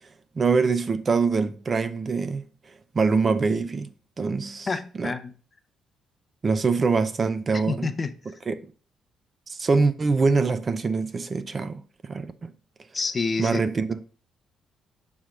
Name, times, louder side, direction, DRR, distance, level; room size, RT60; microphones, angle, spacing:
voice 1, 0.4-2.4 2.9-3.9 4.2-4.7 5.0-5.1 6.4-7.9 8.5-8.6 9.5-12.5 13.4-14.1, right 4 dB, 35° right, 0.5 m, -24 dB
voice 2, 4.7-5.3 7.5-8.4 12.9-13.6, left 4 dB, 30° left, 0.6 m, -29 dB
7.0 x 3.3 x 5.0 m
cardioid pair, 90°, 0 cm